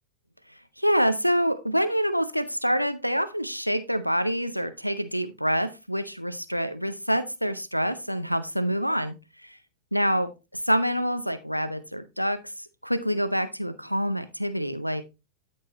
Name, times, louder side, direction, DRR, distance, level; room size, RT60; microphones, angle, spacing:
voice 1, 0.5-9.6 9.9-15.0, equal, 90° left, 12 dB, 0.6 m, -27 dB
12.5 x 4.6 x 2.8 m, 0.26 s
figure-of-eight pair, 90°, 0 cm